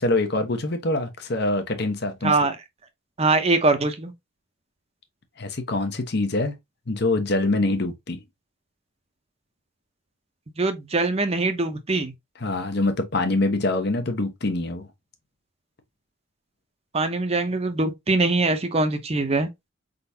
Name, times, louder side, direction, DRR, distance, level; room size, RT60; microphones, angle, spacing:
voice 1, 0.0-2.4 5.4-6.5 6.9-8.2 12.4-14.9, left 2 dB, 55° left, 1.0 m, -24 dB
voice 2, 2.2-2.6 3.2-4.1 10.6-12.1 16.9-19.5, right 3 dB, 30° right, 0.8 m, -22 dB
4.6 x 3.9 x 2.7 m
head